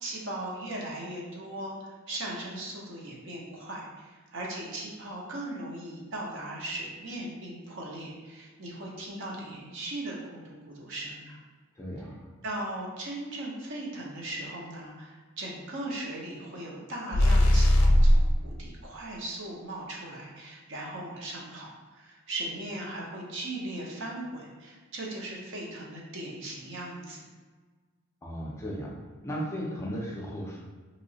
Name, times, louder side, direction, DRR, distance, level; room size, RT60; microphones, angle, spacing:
voice 1, 0.0-11.4 12.4-27.2, right 1 dB, 55° right, -3 dB, 0.7 m, -38 dB
voice 2, 11.8-12.2 28.2-28.9 29.2-30.6, equal, 15° left, -4 dB, 0.4 m, -35 dB
sound 1, 17.1-18.3, left 1 dB, 75° left, 0.4 m, -19 dB
3.0 x 2.8 x 2.7 m, 1.4 s
head